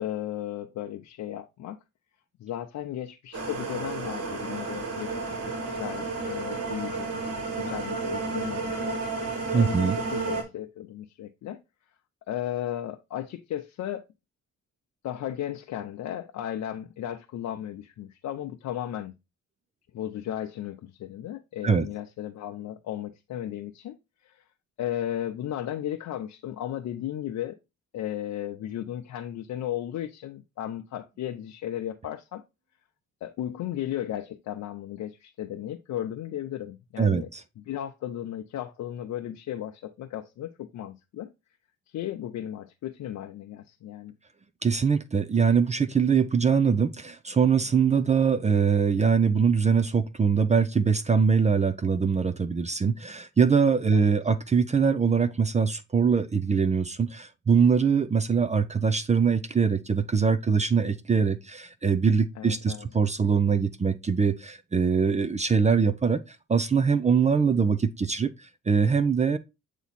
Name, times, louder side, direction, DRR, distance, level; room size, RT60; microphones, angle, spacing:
voice 1, 0.0-1.8 2.4-5.1 5.8-7.2 7.6-9.0 9.2-11.6 12.3-14.0 15.0-19.1 19.9-24.0 24.2-24.4 24.8-27.6 27.9-32.4 33.2-37.3 37.7-41.3 41.9-44.1 53.9-54.0 62.4-62.9, left 11 dB, 70° left, 0.7 m, -35 dB
sound 1, 3.3-10.4, right 3 dB, 55° right, 2.7 m, -32 dB
voice 2, 9.5-10.0 21.6-21.9 37.0-37.4 44.6-69.4, right 6 dB, 25° right, 0.5 m, -23 dB
8.2 x 3.1 x 4.1 m
cardioid pair, 90°, 30 cm